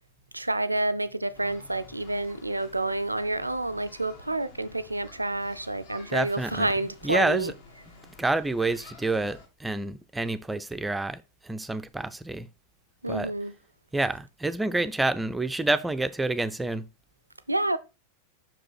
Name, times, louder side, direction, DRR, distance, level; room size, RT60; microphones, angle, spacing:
voice 1, 0.3-7.5 13.0-13.5 14.7-14.8 17.5-17.8, right 2 dB, 85° right, 0.4 m, -29 dB
sound 1, 1.3-9.5, left 3 dB, 55° left, 1.9 m, -51 dB
voice 2, 6.1-6.7 7.0-7.5 8.2-12.5 13.1-13.3 13.9-16.9, right 2 dB, 10° right, 0.4 m, -28 dB
6.0 x 5.1 x 4.2 m
figure-of-eight pair, 90°, 0 cm